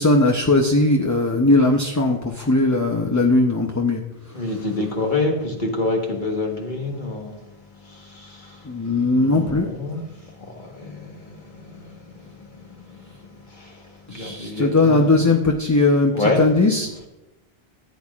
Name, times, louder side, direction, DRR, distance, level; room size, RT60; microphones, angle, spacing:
voice 1, 0.0-4.0 8.6-9.7 14.1-16.9, left 2 dB, 20° left, 1 dB, 0.5 m, -19 dB
voice 2, 4.3-7.3 8.1-8.3 9.1-10.0 10.6-11.0 11.3-11.4 14.1-15.1 16.1-16.5, left 2 dB, 50° left, 1 dB, 1.5 m, -26 dB
14.5 x 8.5 x 2.4 m, 0.97 s
omnidirectional pair, 1.1 m